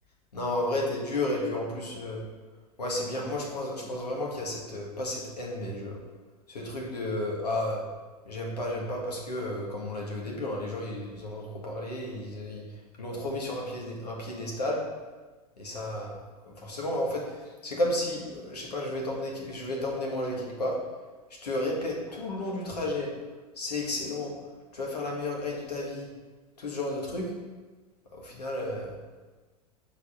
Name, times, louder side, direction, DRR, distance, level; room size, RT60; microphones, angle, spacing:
voice 1, 0.3-2.2 2.8-6.0 6.5-7.8 8.2-12.6 13.0-14.8 15.6-16.2 16.4-17.2 17.6-20.8 21.4-23.1 23.6-24.3 24.7-26.1 26.6-27.3 28.2-28.9, left 1 dB, 85° left, -2 dB, 1.7 m, -32 dB
6.3 x 4.1 x 5.5 m, 1.3 s
hypercardioid pair, 95°, 20 cm